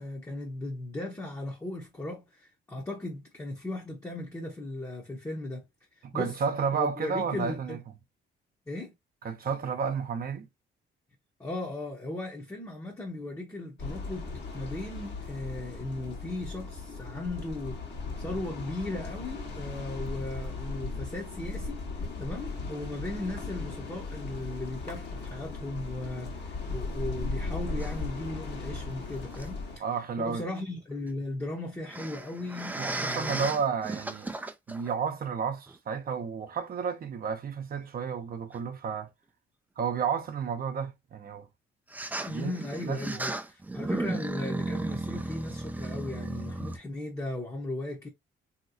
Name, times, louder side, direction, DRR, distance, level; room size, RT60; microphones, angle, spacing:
voice 1, 0.0-5.6 6.1-6.4 6.7-7.8 8.7-8.9 11.4-21.8 22.2-29.8 30.2-33.5 42.2-48.1, left 2 dB, 15° left, 0.8 m, -37 dB
voice 2, 6.0-7.8 9.2-10.5 29.8-30.5 32.8-34.3 34.7-39.1 39.8-41.5 42.3-42.5 42.8-43.0, right 6 dB, 50° right, 0.7 m, -31 dB
sound 1, 13.8-29.8, left 3 dB, 60° left, 1.3 m, -37 dB
sound 2, 27.8-28.0 29.3-29.5 31.9-34.9 35.7-35.8 38.5-38.6 41.9-46.8, right 2 dB, 10° right, 0.4 m, -35 dB
3.0 x 2.8 x 2.6 m
cardioid pair, 90°, 20 cm